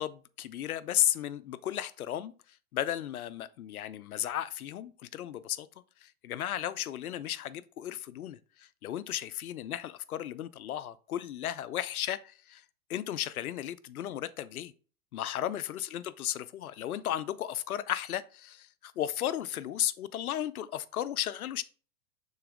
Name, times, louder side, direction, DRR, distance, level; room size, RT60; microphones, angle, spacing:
voice 1, 0.0-5.7 6.0-12.6 12.9-14.7 15.1-21.6, left 11 dB, 85° left, 0.6 m, -34 dB
6.8 x 4.0 x 3.5 m
hypercardioid pair, 105°, 43 cm